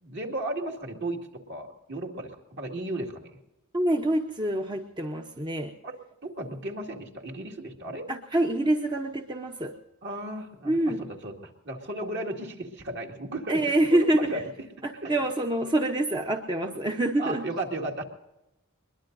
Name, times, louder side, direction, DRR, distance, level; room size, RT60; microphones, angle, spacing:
voice 1, 0.0-3.3 5.8-5.9 6.2-8.1 10.0-13.8 14.2-14.4 15.0-15.2 17.2-18.0, right 1 dB, 55° right, 2 dB, 2.3 m, -35 dB
voice 2, 3.7-5.7 8.1-9.7 10.6-11.0 13.5-14.4 14.8-17.4, right 1 dB, 20° right, 3 dB, 0.8 m, -26 dB
22.0 x 22.0 x 2.6 m, 0.95 s
head